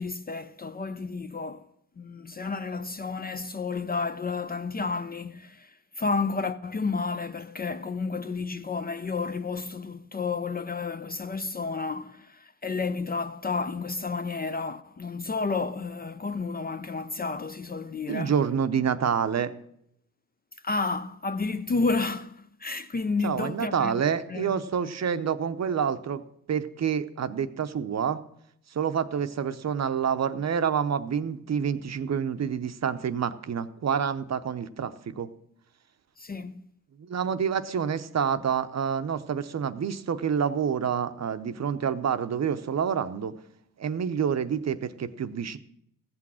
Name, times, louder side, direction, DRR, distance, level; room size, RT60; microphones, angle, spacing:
voice 1, 0.0-1.7 2.0-18.3 20.6-24.0 24.3-24.6 36.2-36.6, left 4 dB, 25° left, 0.4 m, -31 dB
voice 2, 18.1-19.5 23.2-26.2 26.5-28.2 28.7-35.3 37.0-43.3 43.8-45.6, right 7 dB, 45° right, 0.7 m, -28 dB
15.0 x 6.1 x 6.2 m
cardioid pair, 95°, 36 cm